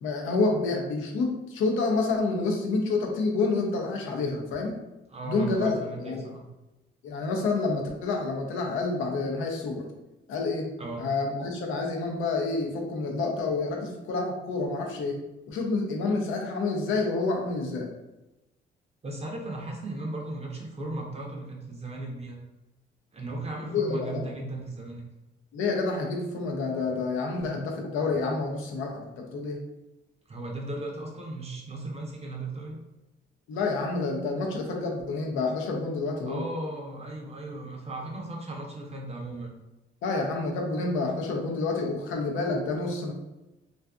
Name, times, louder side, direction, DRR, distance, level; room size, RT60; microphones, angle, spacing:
voice 1, 0.0-4.8 5.3-6.3 7.0-9.8 10.3-10.7 11.0-15.2 15.5-17.9 23.6-24.3 25.5-29.6 33.5-36.5 40.0-43.1, left 3 dB, 85° left, 1 dB, 0.6 m, -28 dB
voice 2, 5.1-6.4 10.8-11.1 19.0-22.4 23.1-25.0 30.3-32.8 36.3-39.5, right 2 dB, 30° right, -1 dB, 0.5 m, -36 dB
2.5 x 2.4 x 2.3 m, 0.99 s
cardioid pair, 90°, 20 cm